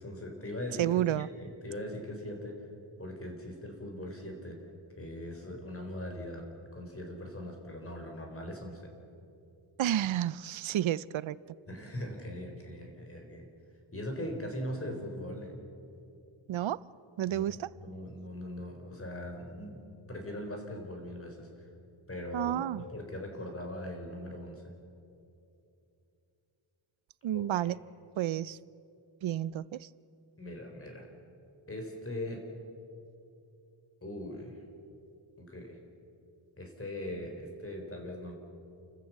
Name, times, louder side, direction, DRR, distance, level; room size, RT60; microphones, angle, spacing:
voice 1, 0.0-2.6 3.0-4.6 5.0-6.4 6.7-8.8 11.7-13.5 13.9-15.6 17.3-19.8 20.1-21.7 22.1-24.7 27.3-27.7 30.4-31.1 31.7-32.4 34.0-34.6 35.4-35.8 36.6-38.3, left 1 dB, 25° left, 3 dB, 4.2 m, -40 dB
voice 2, 0.8-1.3 9.8-11.4 16.5-16.8 17.2-17.7 22.3-22.8 27.2-27.8 28.2-28.6 29.2-29.9, right 12 dB, 70° right, 20 dB, 0.6 m, -30 dB
29.5 x 14.5 x 7.5 m, 2.6 s
wide cardioid pair, 125°, 49 cm